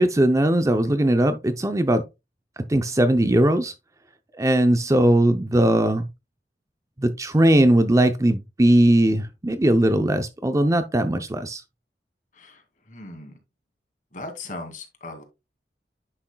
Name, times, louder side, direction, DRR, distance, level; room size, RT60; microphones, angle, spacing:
voice 1, 0.0-2.0 2.7-3.7 4.4-6.1 7.0-11.6, right 1 dB, 20° right, 0.6 m, -19 dB
voice 2, 12.3-13.3 14.1-15.2, left 2 dB, 45° left, 2.3 m, -38 dB
9.9 x 6.2 x 2.2 m
head